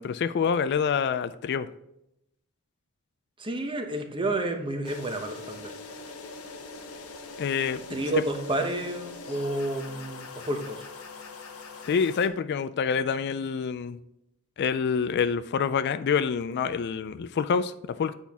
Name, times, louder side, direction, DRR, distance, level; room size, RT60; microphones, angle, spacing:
voice 1, 0.0-1.7 7.4-8.0 11.8-14.0 14.6-18.1, left 6 dB, 50° left, 13 dB, 0.3 m, -27 dB
voice 2, 3.4-5.7 7.9-10.9, right 2 dB, 25° right, 5 dB, 0.8 m, -30 dB
sound 1, 4.8-12.3, left 4 dB, 75° left, 0.9 m, -42 dB
8.3 x 5.8 x 3.5 m, 0.82 s
head